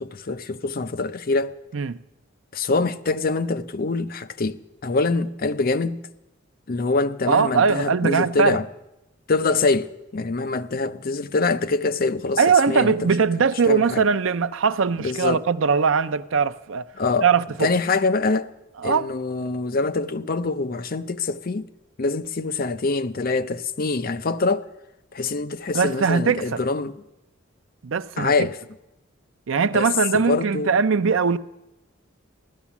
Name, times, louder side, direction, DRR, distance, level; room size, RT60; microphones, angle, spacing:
voice 1, 0.0-1.6 2.5-6.0 6.7-8.7 9.3-13.1 13.7-14.0 15.0-15.4 17.0-17.3 17.6-18.5 18.8-21.7 22.0-24.7 25.1-26.9 28.2-28.6 29.7-29.9 30.1-30.7, left 3 dB, 45° left, 0.6 m, -24 dB
voice 2, 7.3-8.6 12.4-16.8 17.2-17.7 18.8-19.1 25.7-26.6 27.8-28.5 29.5-31.4, right 5 dB, 75° right, 0.5 m, -21 dB
16.0 x 12.5 x 7.1 m
head